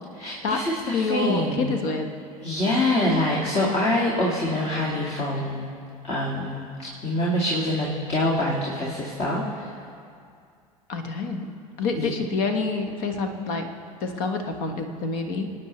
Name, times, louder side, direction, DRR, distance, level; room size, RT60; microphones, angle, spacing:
voice 1, 0.1-1.7 2.4-5.7 6.0-9.7 11.9-12.1, left 1 dB, 35° left, -4 dB, 2.2 m, -25 dB
voice 2, 0.9-2.1 10.9-11.5 11.8-13.7 14.0-15.5, left 4 dB, 50° left, 6 dB, 1.4 m, -27 dB
26.0 x 9.3 x 3.2 m, 2.3 s
figure-of-eight pair, 70°, 19 cm